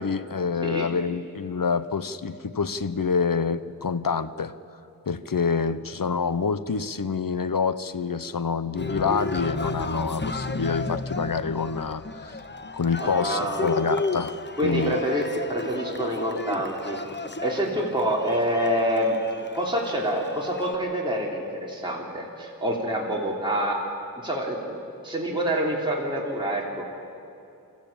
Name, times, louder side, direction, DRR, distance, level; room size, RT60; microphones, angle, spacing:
voice 1, 0.0-4.5 5.1-12.4 12.7-14.4 14.6-15.0, left 5 dB, 60° left, 14 dB, 0.9 m, -27 dB
Cheering, 8.8-20.8, left 3 dB, 30° left, 0.9 m, -33 dB
voice 2, 13.0-13.7 14.6-17.0 17.4-19.2 19.5-23.8 24.2-26.8, equal, 10° right, -4 dB, 3.3 m, -27 dB
25.0 x 14.5 x 8.7 m, 2.7 s
wide cardioid pair, 50°, 38 cm